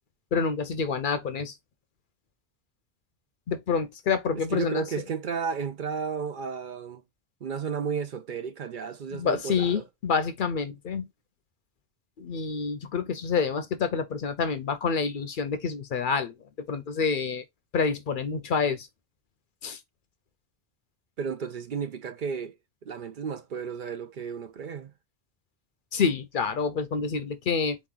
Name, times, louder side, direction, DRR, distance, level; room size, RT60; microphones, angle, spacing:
voice 1, 0.3-1.5 3.5-4.8 9.1-11.1 12.2-16.3 16.7-17.4 17.7-18.9 19.6-19.8 25.9-27.8, left 5 dB, 60° left, 0.7 m, -27 dB
voice 2, 4.5-7.0 7.4-9.8 21.2-22.5 22.8-24.9, right 6 dB, 60° right, 0.6 m, -33 dB
4.3 x 3.0 x 3.6 m
omnidirectional pair, 1.1 m